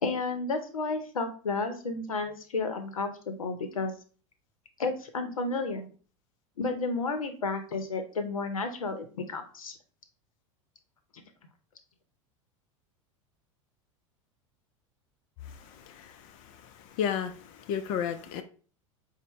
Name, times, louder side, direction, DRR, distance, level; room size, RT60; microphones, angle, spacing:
voice 1, 0.0-3.9 4.8-5.9 6.6-9.7, left 3 dB, 90° left, 0.7 m, -32 dB
voice 2, 15.5-18.4, left 8 dB, 50° left, 0.4 m, -34 dB
5.4 x 2.1 x 3.0 m
hypercardioid pair, 90°, 17 cm